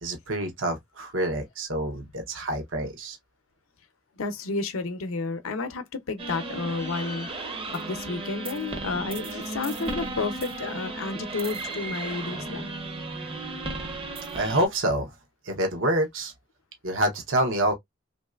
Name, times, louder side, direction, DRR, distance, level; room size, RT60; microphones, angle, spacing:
voice 1, 0.0-3.2 14.3-15.1 15.4-16.3 16.8-17.7, right 1 dB, 70° right, 0.8 m, -27 dB
voice 2, 4.2-12.7, left 3 dB, 90° left, 0.6 m, -31 dB
sound 1, 6.2-14.7, right 2 dB, 25° right, 0.6 m, -35 dB
3.1 x 2.6 x 2.3 m
head